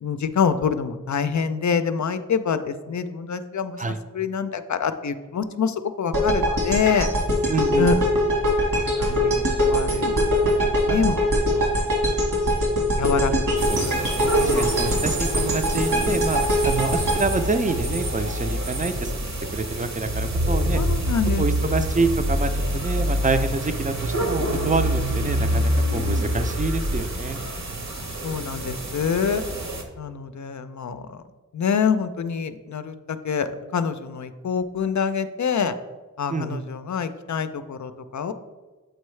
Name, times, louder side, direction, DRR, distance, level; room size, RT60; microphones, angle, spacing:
voice 1, 0.0-3.8 4.1-7.1 7.8-8.0 8.8-10.4 10.8-11.2 11.5-11.7 13.0-14.0 14.3-14.9 20.7-21.8 28.2-29.4 30.0-31.2 31.5-35.7 36.2-38.3, left 6 dB, 65° left, 11 dB, 0.5 m, -26 dB
sound 1, 6.1-18.3, equal, 80° right, 1.6 m, -22 dB
voice 2, 7.5-7.9 13.0-19.1 19.5-20.8 21.4-27.4 36.3-36.7, right 3 dB, 25° right, 9 dB, 0.5 m, -27 dB
sound 2, 13.6-29.8, right 1 dB, 60° right, 0.9 m, -26 dB
7.8 x 4.5 x 3.2 m, 1.3 s
wide cardioid pair, 70°, 32 cm